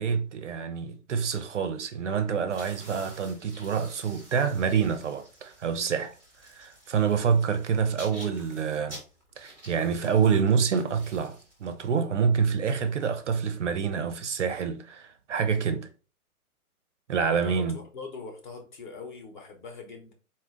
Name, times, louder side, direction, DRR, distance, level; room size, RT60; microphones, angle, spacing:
voice 1, 0.0-6.1 6.5-9.0 9.4-15.9 17.1-17.8, right 6 dB, 50° right, 0.5 m, -27 dB
sound 1, 2.5-13.4, right 1 dB, 5° left, 0.6 m, -50 dB
voice 2, 17.3-20.1, left 4 dB, 30° left, 1.0 m, -42 dB
4.2 x 2.5 x 3.6 m
hypercardioid pair, 155°, 46 cm